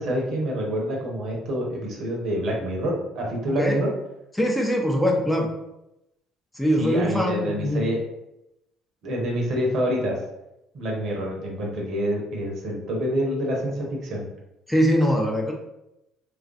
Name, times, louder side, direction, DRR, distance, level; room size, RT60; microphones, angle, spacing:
voice 1, 0.0-3.9 6.8-8.0 9.0-10.2 10.7-14.2, equal, 55° right, -1 dB, 0.8 m, -27 dB
voice 2, 4.3-5.5 6.6-7.9 14.7-15.5, equal, 5° left, 0 dB, 0.6 m, -22 dB
3.1 x 2.4 x 2.5 m, 0.89 s
hypercardioid pair, 55°, 0 cm